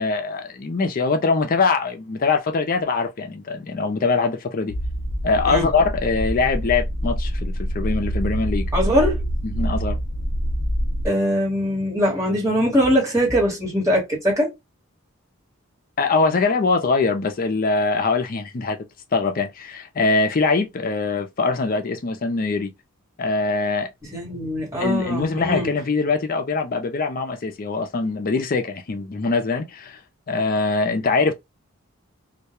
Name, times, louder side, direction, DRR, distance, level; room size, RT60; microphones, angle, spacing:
voice 1, 0.0-4.7 5.2-8.7 9.5-10.0 16.0-18.8 19.1-22.7 23.2-23.9 24.8-30.0 30.3-31.3, left 4 dB, 40° left, 0.4 m, -22 dB
sound 1, 4.7-11.1, equal, 80° right, 1.2 m, -25 dB
voice 2, 8.7-9.2 11.0-14.5 24.1-25.7, equal, 15° right, 1.2 m, -21 dB
2.2 x 2.1 x 2.8 m
head